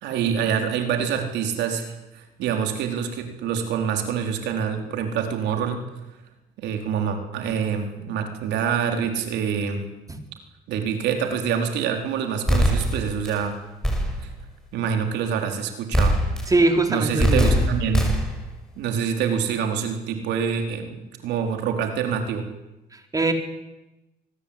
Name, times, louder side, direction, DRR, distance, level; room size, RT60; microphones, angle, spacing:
voice 1, 0.0-5.8 6.6-9.8 10.7-13.6 14.7-16.2 16.9-18.1 18.8-22.5, right 7 dB, 85° right, 5 dB, 4.3 m, -26 dB
sound 1, 12.5-13.4 13.8-14.4 15.9-16.7 17.2-18.5, equal, 5° left, 6.3 m, -22 dB
voice 2, 16.5-17.7 22.9-23.3, right 2 dB, 20° right, 5 dB, 4.1 m, -22 dB
26.0 x 20.0 x 8.9 m, 1.0 s
cardioid pair, 100°, 18 cm